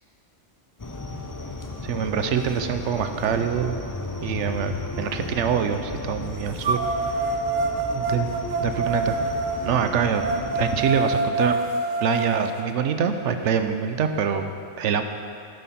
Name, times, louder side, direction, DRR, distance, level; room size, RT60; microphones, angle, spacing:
sound 1, 0.8-10.8, left 2 dB, 20° left, 0.6 m, -35 dB
voice 1, 1.8-3.8 4.2-6.8 7.9-8.3 8.6-9.3 9.7-10.2 10.5-11.6 12.0-14.5 14.8-15.0, right 7 dB, 80° right, 8 dB, 1.0 m, -25 dB
sound 2, 2.8-2.9 3.5-5.4 6.6-12.7, right 2 dB, 45° right, 0.6 m, -27 dB
10.5 x 9.2 x 4.3 m, 2.4 s
omnidirectional pair, 1.2 m